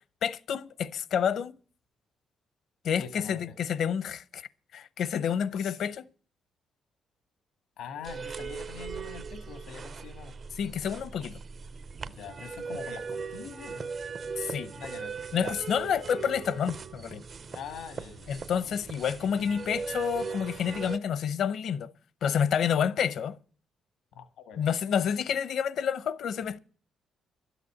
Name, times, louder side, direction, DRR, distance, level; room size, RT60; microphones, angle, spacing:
voice 1, 0.2-1.5 2.8-6.1 10.6-11.4 14.4-14.7 15.3-17.2 18.3-21.9 22.2-23.3 24.6-26.6, left 8 dB, 60° left, 0.8 m, -29 dB
voice 2, 3.0-3.5 5.5-5.8 7.8-10.4 12.1-13.9 14.7-15.9 17.5-18.3 24.1-24.6, left 7 dB, 85° left, 1.7 m, -44 dB
sound 1, 8.0-21.0, right 5 dB, 40° right, 0.6 m, -39 dB
12.5 x 8.2 x 8.5 m
cardioid pair, 140°, 0 cm